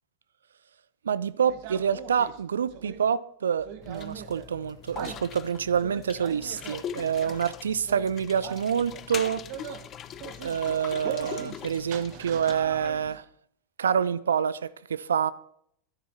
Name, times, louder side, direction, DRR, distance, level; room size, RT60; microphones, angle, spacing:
voice 1, 1.0-9.4 10.4-13.2 13.8-15.3, right 7 dB, 65° right, 0.6 m, -27 dB
sound 1, 1.5-3.0 3.6-4.5 4.9-5.2 5.7-6.8 7.2-7.4 7.8-8.1 8.4-9.1 9.5-9.8 10.1-10.6 11.0-11.6 11.9-13.2, right 10 dB, 45° right, 1.3 m, -41 dB
sound 2, 3.8-13.1, left 9 dB, 30° left, 0.7 m, -42 dB
13.5 x 12.5 x 4.1 m
figure-of-eight pair, 90°, 0 cm